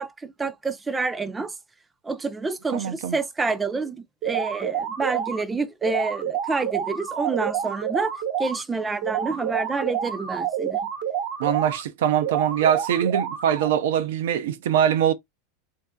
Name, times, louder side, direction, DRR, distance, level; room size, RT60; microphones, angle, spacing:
voice 1, 0.0-1.5 2.0-8.1 8.4-10.8, right 3 dB, 15° right, 0.5 m, -28 dB
voice 2, 2.7-3.2 11.4-15.1, right 9 dB, 80° right, 0.5 m, -23 dB
sound 1, 4.2-5.4 5.8-8.6 9.0-11.8 12.2-13.8, right 9 dB, 65° right, 0.8 m, -28 dB
3.3 x 2.6 x 2.3 m
supercardioid pair, 120°, 0 cm